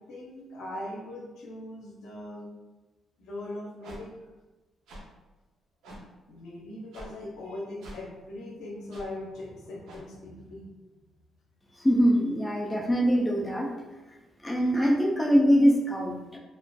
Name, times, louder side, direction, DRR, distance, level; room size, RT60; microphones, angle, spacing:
voice 1, 0.1-2.5 3.2-4.1 6.3-10.7, left 1 dB, 75° left, -2 dB, 0.6 m, -40 dB
sound 1, 3.8-4.0 4.9-5.0 5.8-6.0 6.9-7.1 7.8-8.0 8.9-9.0 9.8-10.0, right 1 dB, 85° right, 0.6 m, -44 dB
voice 2, 11.8-13.7 14.4-16.4, equal, 10° left, 0 dB, 0.4 m, -23 dB
2.4 x 2.3 x 2.2 m, 1.1 s
cardioid pair, 90°, 0 cm